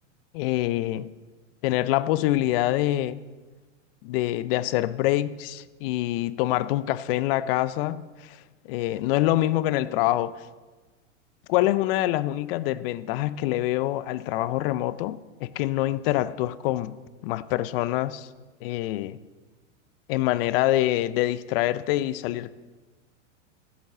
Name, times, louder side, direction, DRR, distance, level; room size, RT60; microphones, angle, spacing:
voice 1, 0.3-1.1 1.6-3.2 4.0-8.4 8.6-10.5 11.5-17.0 17.2-18.3 18.6-19.2 20.1-22.5, left 15 dB, 50° left, 0.6 m, -25 dB
13.0 x 8.3 x 6.7 m
hypercardioid pair, 120°, 37 cm